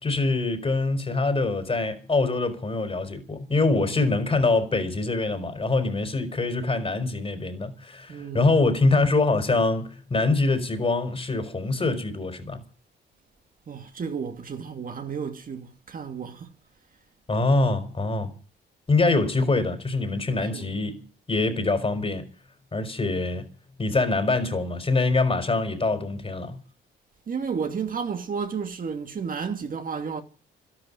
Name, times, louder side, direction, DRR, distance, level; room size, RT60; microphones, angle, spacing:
voice 1, 0.0-12.6 17.3-18.3 18.9-21.0 21.3-22.2 22.7-23.4 23.8-26.6, left 3 dB, 30° left, 4.5 m, -24 dB
voice 2, 8.1-8.6 13.7-16.5 20.4-20.7 27.3-30.2, right 6 dB, 45° right, 2.5 m, -32 dB
12.5 x 11.5 x 9.8 m
cardioid pair, 90°, 20 cm